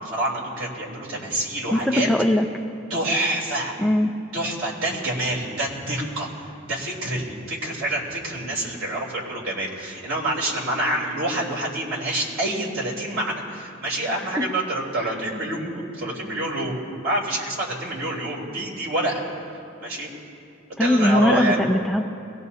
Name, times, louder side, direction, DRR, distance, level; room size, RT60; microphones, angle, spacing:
voice 1, 0.0-2.1 2.9-3.7 4.3-6.3 6.7-20.1 20.7-21.6, right 1 dB, 85° right, -4 dB, 3.4 m, -27 dB
voice 2, 1.7-2.4 3.8-4.1 20.8-22.0, left 1 dB, ahead, 3 dB, 0.4 m, -20 dB
22.0 x 17.0 x 2.8 m, 2.5 s
head